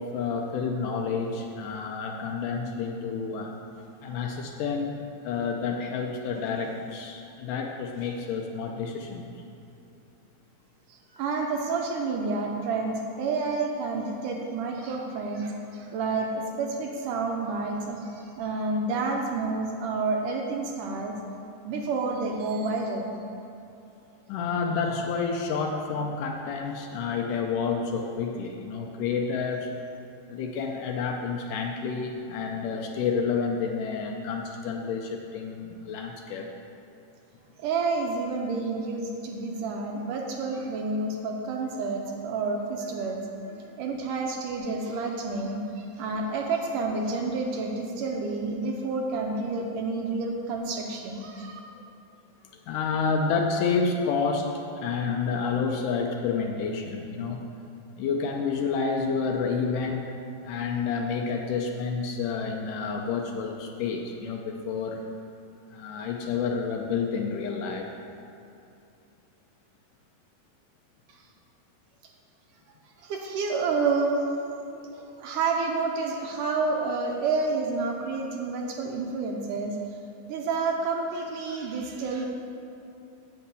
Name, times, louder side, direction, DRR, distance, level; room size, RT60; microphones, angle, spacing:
voice 1, 0.0-3.6 4.0-5.0 5.2-9.3 24.3-29.7 30.3-36.5 52.5-57.4 58.0-60.0 60.4-65.0 65.7-67.9, left 5 dB, 75° left, 2 dB, 2.1 m, -29 dB
voice 2, 10.9-21.2 21.6-23.1 37.6-43.2 43.8-51.6 71.1-71.2 73.0-74.3 74.7-80.0 80.3-82.3, right 3 dB, 75° right, 1 dB, 2.2 m, -29 dB
8.5 x 7.1 x 8.2 m, 2.7 s
omnidirectional pair, 4.2 m